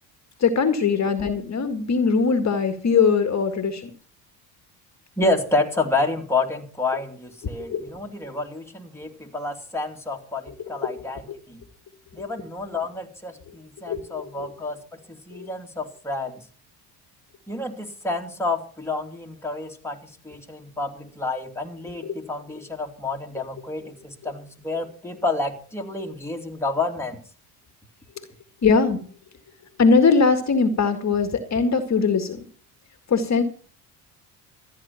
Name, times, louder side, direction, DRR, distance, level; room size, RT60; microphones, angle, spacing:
voice 1, 0.4-3.9 7.7-7.9 10.8-10.9 13.9-14.5 15.3-15.5 22.0-22.2 28.6-29.1 29.8-32.4 33.1-33.4, left 5 dB, 40° left, 7 dB, 1.9 m, -21 dB
voice 2, 5.2-11.6 12.1-16.4 17.5-27.2, left 2 dB, 5° left, 1 dB, 2.7 m, -29 dB
14.0 x 10.5 x 5.8 m, 0.44 s
supercardioid pair, 75°, 44 cm